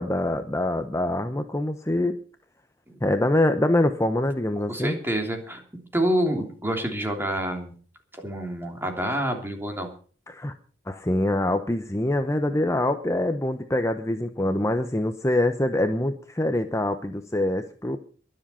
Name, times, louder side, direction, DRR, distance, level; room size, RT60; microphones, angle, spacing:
voice 1, 0.0-2.1 3.0-5.0 10.3-10.5 10.9-18.0, left 1 dB, 15° left, 8 dB, 0.9 m, -24 dB
voice 2, 4.6-5.6 5.9-7.7 8.1-9.9, right 1 dB, 10° right, 4 dB, 3.1 m, -27 dB
22.5 x 7.6 x 5.6 m, 0.41 s
head